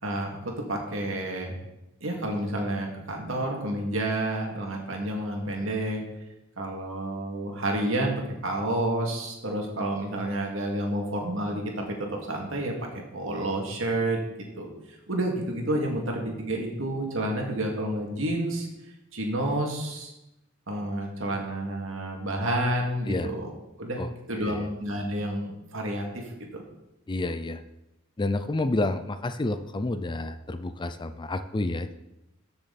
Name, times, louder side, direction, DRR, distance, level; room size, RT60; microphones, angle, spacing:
voice 1, 0.0-1.5 2.0-6.0 6.6-14.2 14.6-18.7 19.1-20.1 20.7-23.5 23.8-26.2 26.5-26.6, right 1 dB, 75° right, 0 dB, 2.4 m, -30 dB
voice 2, 24.4-24.7 27.1-27.6 28.2-31.9, left 2 dB, 25° left, 10 dB, 0.5 m, -29 dB
14.0 x 6.8 x 4.2 m, 0.94 s
head